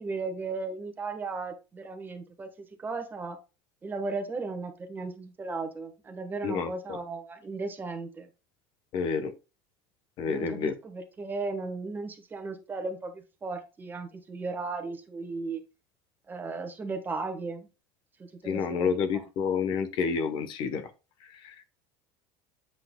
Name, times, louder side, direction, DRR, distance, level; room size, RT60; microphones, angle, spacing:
voice 1, 0.0-3.4 3.8-8.3 10.3-15.6 16.3-17.7 18.2-19.2, right 3 dB, 15° right, 1.2 m, -36 dB
voice 2, 6.4-7.0 8.9-9.3 10.2-10.7 18.4-20.9 21.4-21.6, left 6 dB, 45° left, 1.0 m, -29 dB
7.8 x 5.8 x 2.2 m
cardioid pair, 150°, 11 cm